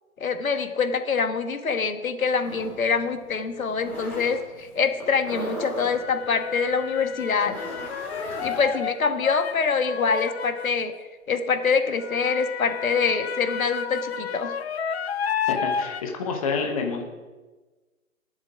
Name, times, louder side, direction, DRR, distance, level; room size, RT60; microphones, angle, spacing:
voice 1, 0.2-7.5 8.4-10.9 11.3-14.5, left 5 dB, 70° left, 7 dB, 1.6 m, -25 dB
sound 1, 2.4-8.7, equal, 5° left, 2.1 m, -38 dB
sound 2, 3.0-3.1 5.9-10.9 12.0-16.0, left 6 dB, 45° left, 0.8 m, -31 dB
voice 2, 15.5-17.0, left 4 dB, 25° left, 2 dB, 1.2 m, -28 dB
18.5 x 7.4 x 4.9 m, 1.3 s
hypercardioid pair, 165°, 43 cm